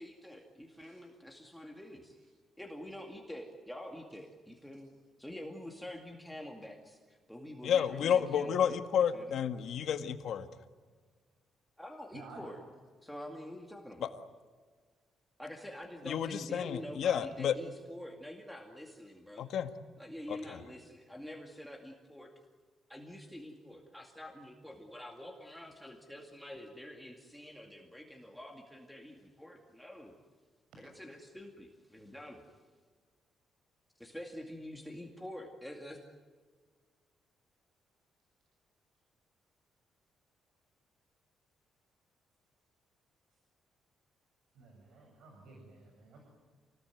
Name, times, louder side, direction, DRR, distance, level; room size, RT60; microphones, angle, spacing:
voice 1, 0.0-2.2 2.6-4.9 5.2-9.3 11.8-12.6 13.0-14.1 15.4-19.4 20.0-22.3 22.9-30.1 30.8-32.6 34.0-36.0, left 1 dB, ahead, 1 dB, 2.3 m, -47 dB
voice 2, 7.6-10.5 14.0-14.1 16.1-17.5 19.4-19.7 20.3-20.6, left 8 dB, 65° left, 8 dB, 1.8 m, -31 dB
voice 3, 12.1-12.6 44.5-46.2, right 3 dB, 80° right, 1 dB, 7.2 m, -53 dB
28.5 x 20.0 x 9.3 m, 1.5 s
cardioid pair, 150°, 0 cm